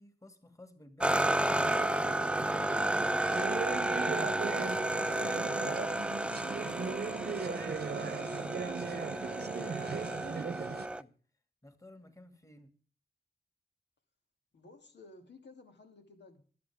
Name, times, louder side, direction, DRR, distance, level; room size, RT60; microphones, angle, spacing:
voice 1, 0.0-3.5 3.9-5.1 5.6-11.1 11.6-12.7, left 1 dB, 20° left, 7 dB, 2.5 m, -54 dB
sound 1, 1.0-11.0, right 1 dB, 5° right, 0.6 m, -32 dB
sound 2, 1.2-10.9, right 6 dB, 70° right, 0.9 m, -38 dB
voice 2, 14.5-16.4, left 3 dB, 85° left, 4 dB, 2.9 m, -55 dB
25.5 x 8.7 x 3.6 m, 0.41 s
wide cardioid pair, 80°, 17 cm